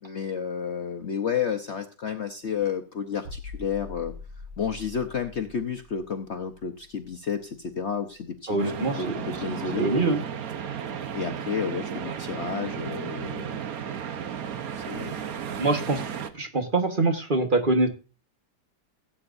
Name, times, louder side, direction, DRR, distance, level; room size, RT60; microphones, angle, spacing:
voice 1, 0.0-4.1 4.6-9.9 11.1-13.6 14.7-15.2, left 7 dB, 50° left, 6 dB, 0.9 m, -31 dB
sound 1, 3.2-8.9 9.2-9.4, left 3 dB, 80° right, 2.9 m, -44 dB
voice 2, 8.5-9.1 9.8-10.2 15.6-16.1 16.3-17.9, right 2 dB, 30° right, 4 dB, 1.4 m, -24 dB
sound 2, 8.6-16.3, right 8 dB, 60° right, 1.3 m, -34 dB
17.0 x 8.7 x 2.6 m, 0.34 s
omnidirectional pair, 1.8 m